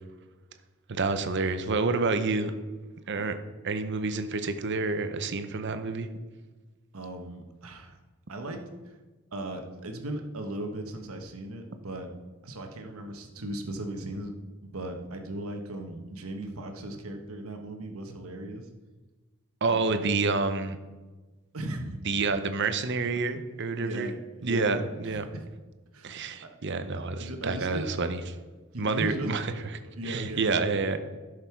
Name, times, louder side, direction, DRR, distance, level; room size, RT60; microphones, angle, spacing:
voice 1, 0.9-2.5 3.1-3.4 3.6-6.1 19.6-20.8 22.0-24.1 24.4-25.2 26.0-28.2 28.8-29.5 30.0-31.0, right 3 dB, 55° right, 9 dB, 0.8 m, -28 dB
voice 2, 6.9-8.0 8.3-9.0 9.3-12.1 12.4-14.4 14.6-18.7 19.7-20.1 21.5-22.0 23.8-25.4 25.9-26.5 27.2-27.9 28.7-29.3 29.8-30.7, right 1 dB, 80° right, 4 dB, 1.3 m, -37 dB
12.0 x 6.6 x 4.6 m, 1.3 s
head